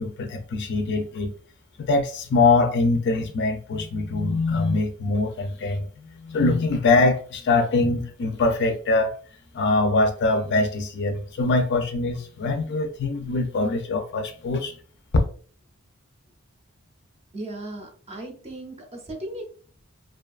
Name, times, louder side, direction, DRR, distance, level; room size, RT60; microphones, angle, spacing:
voice 1, 0.0-1.3 1.8-9.1 9.5-14.8, left 3 dB, 55° left, 0.4 m, -23 dB
voice 2, 17.3-19.4, right 1 dB, 30° right, 0.6 m, -36 dB
2.6 x 2.2 x 2.3 m
head